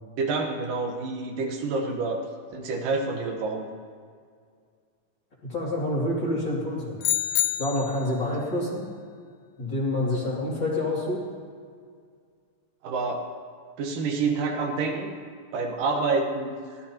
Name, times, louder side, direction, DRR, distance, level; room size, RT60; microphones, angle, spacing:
voice 1, 0.2-2.2 2.5-3.7 12.8-13.2 13.8-15.1 15.5-16.6, right 3 dB, 85° right, 2 dB, 2.9 m, -27 dB
voice 2, 5.5-7.0 7.6-8.9 9.6-11.2, left 1 dB, 35° left, -5 dB, 3.2 m, -27 dB
sound 1, 7.0-8.1, left 13 dB, 85° left, 1.6 m, -26 dB
22.5 x 16.0 x 2.9 m, 2.1 s
omnidirectional pair, 3.7 m